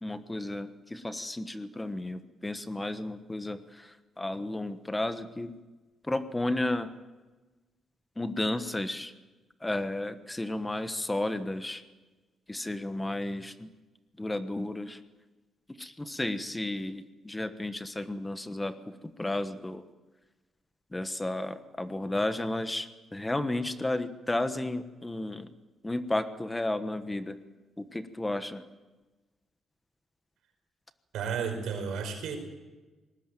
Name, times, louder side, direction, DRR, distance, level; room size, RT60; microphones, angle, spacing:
voice 1, 0.0-5.5 6.0-6.9 8.2-9.1 9.6-11.8 12.5-13.7 14.2-15.0 15.8-18.7 19.2-19.8 20.9-25.5 25.8-27.4 27.8-28.6, left 1 dB, 10° left, 10 dB, 1.2 m, -33 dB
voice 2, 31.1-32.4, right 6 dB, 90° right, 5 dB, 5.2 m, -32 dB
20.0 x 19.0 x 9.1 m, 1.2 s
cardioid pair, 115°, 0 cm